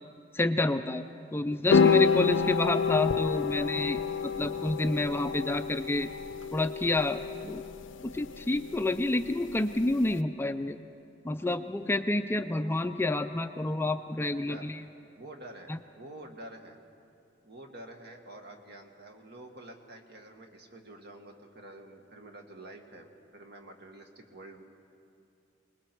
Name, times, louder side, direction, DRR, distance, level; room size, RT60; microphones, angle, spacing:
voice 1, 0.3-1.1 1.3-4.0 4.4-6.1 6.5-7.6 8.0-10.8 11.2-14.8 15.7-15.8, left 2 dB, 10° left, 9 dB, 0.4 m, -29 dB
sound 1, 1.7-10.1, left 5 dB, 75° left, 0.6 m, -29 dB
voice 2, 14.3-14.7 15.2-16.8 17.4-24.6, right 1 dB, 60° right, 3 dB, 1.9 m, -48 dB
27.5 x 20.0 x 4.6 m, 2.7 s
head